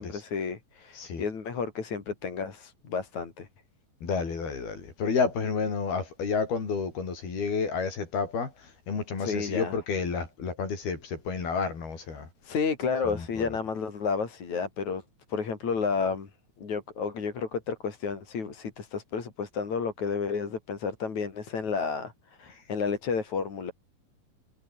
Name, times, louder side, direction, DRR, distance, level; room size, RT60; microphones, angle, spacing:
voice 1, 0.0-3.5 9.2-9.8 12.4-15.0 15.3-16.3 16.6-23.7, left 5 dB, 50° left, 4.8 m, -31 dB
voice 2, 4.0-12.3 13.0-13.5, left 5 dB, 85° left, 7.6 m, -30 dB
omnidirectional pair, 4.3 m